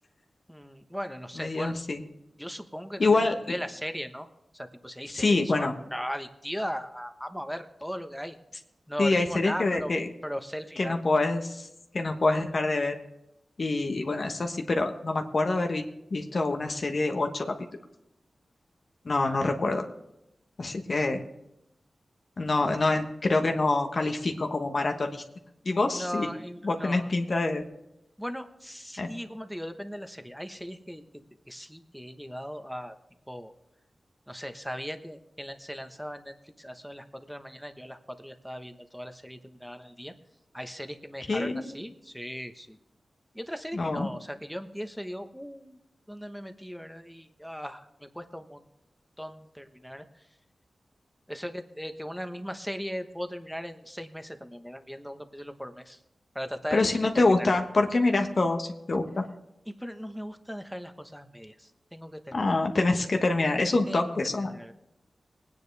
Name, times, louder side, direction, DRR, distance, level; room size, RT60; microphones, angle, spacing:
voice 1, 0.5-1.7 2.4-4.3 4.5-8.4 8.9-9.9 10.2-11.0 19.2-19.4 25.9-27.1 28.2-31.0 31.5-32.9 33.3-33.5 34.3-40.1 40.5-42.8 43.3-45.8 46.1-47.9 48.1-48.6 49.2-50.0 51.3-56.0 56.3-56.9 57.2-57.5 59.8-62.6 63.9-64.7, equal, ahead, 7 dB, 1.1 m, -38 dB
voice 2, 1.4-2.0 3.0-3.5 5.1-5.7 9.0-10.1 10.8-11.7 11.9-12.9 13.6-15.8 16.1-17.5 19.0-19.8 20.6-21.2 22.4-25.2 25.6-26.3 26.6-27.6 29.0-29.1 41.3-41.8 43.7-44.1 56.7-59.2 62.3-64.5, left 2 dB, 55° left, 4 dB, 1.2 m, -26 dB
19.5 x 9.7 x 3.4 m, 0.85 s
cardioid pair, 65°, 0 cm